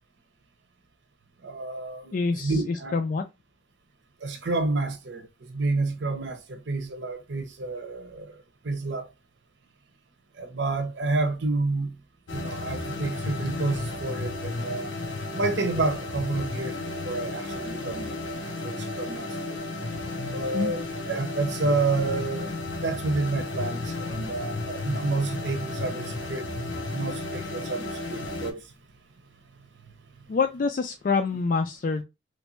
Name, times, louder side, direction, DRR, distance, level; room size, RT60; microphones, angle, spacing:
voice 1, 1.4-3.0 4.2-9.1 10.4-11.9 12.3-14.9 15.3-19.6 20.3-20.8 21.1-22.5 22.8-28.7, right 3 dB, 70° right, 0.8 m, -30 dB
voice 2, 2.1-3.2 20.5-20.7 30.3-32.0, left 4 dB, 45° left, 0.3 m, -26 dB
sound 1, 12.3-28.5, left 2 dB, 85° left, 0.8 m, -33 dB
3.1 x 2.6 x 3.0 m
head